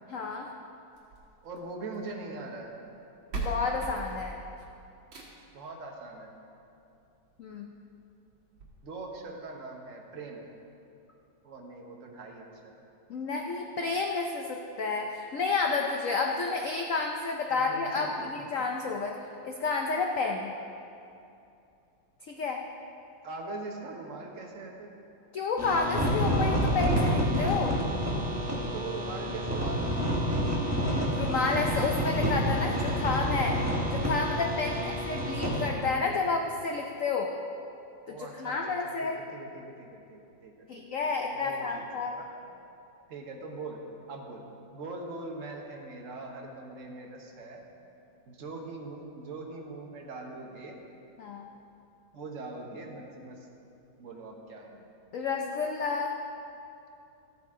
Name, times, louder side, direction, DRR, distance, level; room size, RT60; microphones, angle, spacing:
voice 1, 0.1-0.5 3.3-4.4 7.4-7.7 13.1-19.2 19.4-20.5 22.3-22.6 25.3-27.8 31.1-33.6 33.8-37.3 38.1-39.2 40.7-42.2 51.2-51.5 55.1-56.1, left 4 dB, 80° left, 2 dB, 0.7 m, -30 dB
sound 1, 0.9-2.1 3.0-3.1 3.3-5.6 6.9-7.0 7.5-7.6 7.9-8.0 8.6-8.7, right 2 dB, 80° right, 2.4 m, -39 dB
voice 2, 1.4-2.8 5.5-6.3 8.8-10.5 11.4-12.7 17.5-18.3 23.2-24.9 28.7-29.8 34.7-35.0 38.1-38.8 39.0-40.8 41.3-41.8 42.2-42.3 43.1-43.8 44.1-44.4 44.7-47.6 48.3-50.8 52.1-53.4 54.0-54.9, right 3 dB, 45° right, 0 dB, 1.3 m, -42 dB
sound 2, 25.6-35.7, equal, 10° right, 1.1 m, -28 dB
13.5 x 8.9 x 3.7 m, 2.7 s
omnidirectional pair, 2.2 m